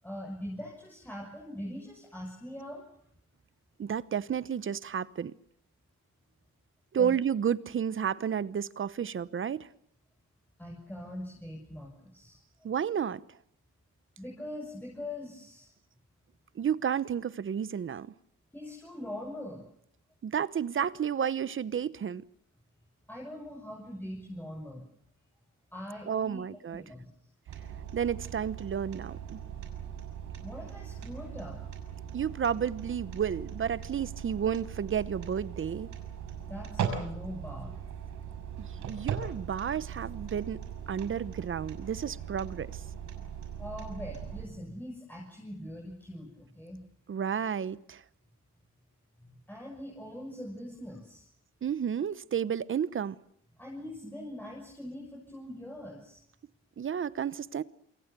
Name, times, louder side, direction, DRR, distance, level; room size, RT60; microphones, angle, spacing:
voice 1, 0.0-2.8 7.0-7.1 10.6-12.4 14.2-15.7 18.5-19.7 23.1-24.8 25.7-26.4 26.7-27.1 30.4-31.6 36.4-37.8 43.6-46.8 49.2-51.3 53.6-56.2, left 1 dB, 5° left, 6.6 m, -42 dB
voice 2, 3.8-5.3 6.9-9.7 12.6-13.2 16.5-18.1 20.2-22.2 26.1-26.8 27.9-29.4 32.1-35.9 38.6-40.6 40.9-42.8 47.1-48.0 51.6-53.2 56.8-57.6, right 8 dB, 45° right, 0.9 m, -31 dB
sound 1, 27.5-44.5, right 8 dB, 75° right, 6.2 m, -39 dB
28.0 x 23.5 x 6.8 m
cardioid pair, 90°, 30 cm